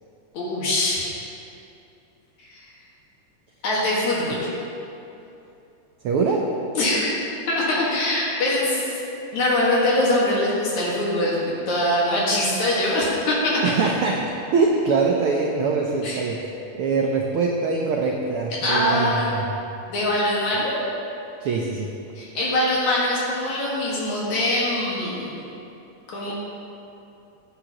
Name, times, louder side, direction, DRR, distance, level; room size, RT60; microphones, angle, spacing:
voice 1, 0.3-1.1 2.4-2.7 3.6-4.5 6.7-7.1 7.5-9.0 9.3-13.6 16.0-16.2 18.6-19.3 19.9-20.8 22.2-25.3 26.1-26.3, left 1 dB, 70° left, -6 dB, 3.1 m, -23 dB
voice 2, 6.0-6.4 13.6-14.2 14.5-19.5 21.4-21.9, right 4 dB, 85° right, 0 dB, 1.2 m, -23 dB
15.5 x 8.9 x 3.0 m, 2.8 s
omnidirectional pair, 3.4 m